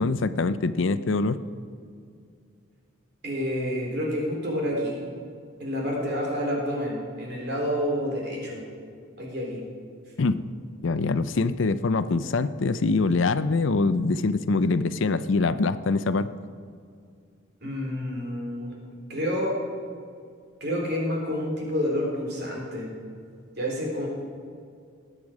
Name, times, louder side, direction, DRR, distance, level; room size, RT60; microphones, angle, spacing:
voice 1, 0.0-1.4 10.2-10.5 10.8-16.3, left 3 dB, 70° left, 13 dB, 0.5 m, -24 dB
voice 2, 3.2-5.0 5.6-8.6 9.2-9.6 17.6-18.8 19.1-19.6 20.6-22.9 23.6-24.1, equal, 50° right, -1 dB, 3.4 m, -29 dB
18.5 x 9.0 x 4.9 m, 2.3 s
head